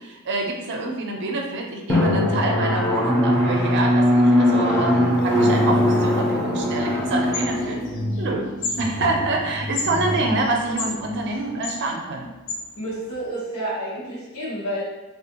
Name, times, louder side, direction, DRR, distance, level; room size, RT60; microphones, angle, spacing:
voice 1, 0.0-7.8 8.2-8.5 8.8-12.3, right 2 dB, 55° right, 1 dB, 0.5 m, -26 dB
Drum, 1.9-11.2, left 1 dB, 10° left, 0.5 m, -21 dB
sound 1, 6.6-13.3, left 3 dB, 55° left, 0.5 m, -35 dB
voice 2, 12.7-14.8, right 1 dB, 80° left, -6 dB, 1.0 m, -30 dB
3.4 x 2.4 x 2.8 m, 1.1 s
head